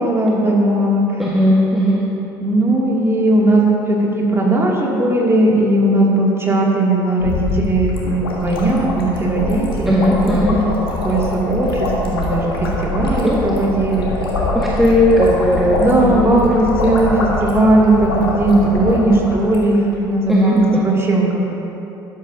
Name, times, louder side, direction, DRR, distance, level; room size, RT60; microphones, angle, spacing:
voice 1, 0.0-1.2 2.4-10.5 11.0-14.1 15.8-21.4, right 2 dB, 20° right, -3 dB, 2.6 m, -17 dB
voice 2, 1.2-2.0 9.8-10.6 13.3-13.4 14.5-16.3 20.3-20.5, equal, ahead, -6 dB, 1.6 m, -16 dB
sound 1, 7.2-19.9 20.2-20.3 20.5-20.8, left 2 dB, 85° left, 1.5 m, -23 dB
12.5 x 12.0 x 2.8 m, 3.0 s
figure-of-eight pair, 60°, 12 cm